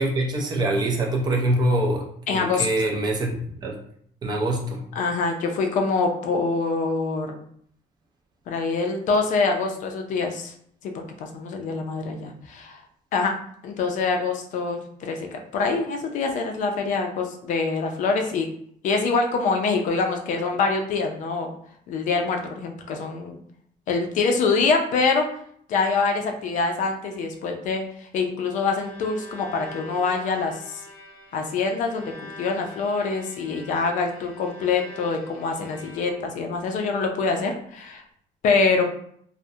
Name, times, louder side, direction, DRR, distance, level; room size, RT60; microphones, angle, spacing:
voice 1, 0.0-2.1 2.3-3.3 3.6-3.8 4.2-4.8, right 1 dB, 30° right, 0 dB, 0.3 m, -24 dB
voice 2, 2.3-2.7 5.0-7.3 8.5-10.5 10.9-12.8 13.1-13.4 13.6-18.5 18.8-21.5 21.9-23.4 23.9-25.3 25.7-27.8 28.1-30.8 31.3-38.0 38.4-38.8, left 4 dB, 55° left, 4 dB, 0.4 m, -25 dB
Bowed string instrument, 28.7-36.5, left 1 dB, 40° left, 0.9 m, -44 dB
2.3 x 2.0 x 2.6 m, 0.64 s
cardioid pair, 175°, 15 cm